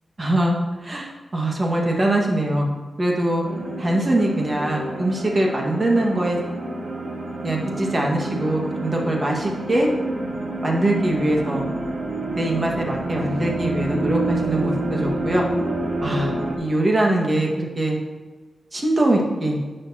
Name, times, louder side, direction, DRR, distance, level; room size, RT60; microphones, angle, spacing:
voice 1, 0.2-0.6 0.8-2.7 3.0-3.5 3.8-6.4 7.4-9.9 10.6-11.6 12.4-15.4 16.0-18.0 18.7-19.6, right 1 dB, 30° right, -1 dB, 1.9 m, -22 dB
sound 1, 3.4-16.6, right 2 dB, 50° right, 1.6 m, -28 dB
10.5 x 8.0 x 3.0 m, 1.4 s
wide cardioid pair, 120°, 0 cm